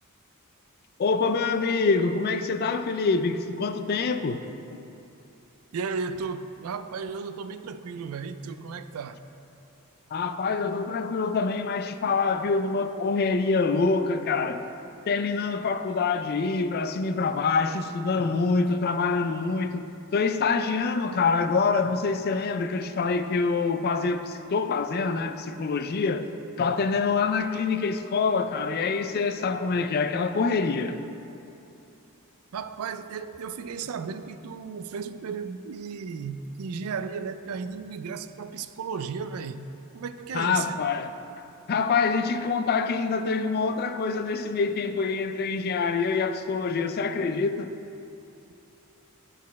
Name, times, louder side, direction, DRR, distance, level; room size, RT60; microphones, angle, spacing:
voice 1, 1.0-4.5 4.7-4.8 10.1-14.7 15.1-19.9 20.1-26.3 26.6-31.1 40.3-41.2 41.7-47.7, left 4 dB, 45° left, 0.3 m, -25 dB
voice 2, 5.7-9.2 32.5-40.8, right 5 dB, 75° right, 0.4 m, -34 dB
12.5 x 4.2 x 4.1 m
head